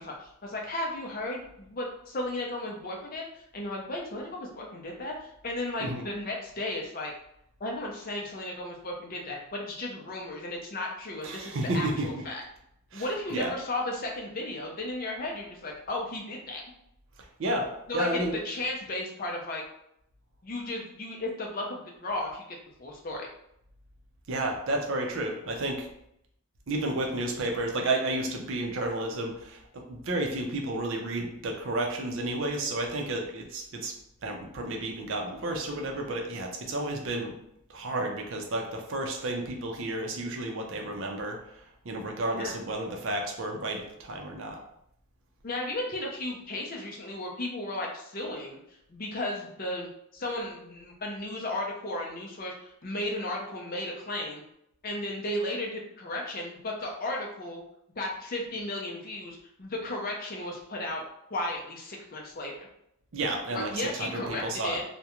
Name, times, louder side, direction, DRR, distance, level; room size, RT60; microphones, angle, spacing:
voice 1, 0.0-7.1 7.6-12.4 12.9-16.6 17.9-19.6 20.4-22.4 22.8-23.3 42.3-42.5 45.4-48.6 48.9-54.4 54.8-57.6 58.0-61.0 61.3-62.7 63.5-64.8, left 1 dB, 40° left, -1 dB, 0.5 m, -34 dB
voice 2, 11.2-12.1 12.9-13.1 13.3-13.5 17.4-18.4 24.3-25.9 26.7-33.9 34.2-37.4 37.7-41.4 41.8-44.6 63.1-64.8, right 1 dB, 60° right, 2 dB, 0.5 m, -31 dB
2.4 x 2.1 x 2.8 m, 0.76 s
head